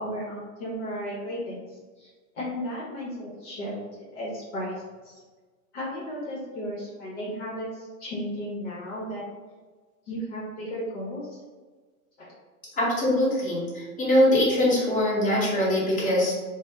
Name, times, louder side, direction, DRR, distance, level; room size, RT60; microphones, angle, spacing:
voice 1, 0.0-2.1 2.3-3.8 4.1-5.1 5.7-9.2 10.1-11.4 12.2-12.3, equal, 55° left, -5 dB, 0.9 m, -34 dB
voice 2, 12.7-16.3, left 1 dB, 20° left, -9 dB, 1.1 m, -22 dB
2.7 x 2.1 x 3.3 m, 1.4 s
hypercardioid pair, 135°, 43 cm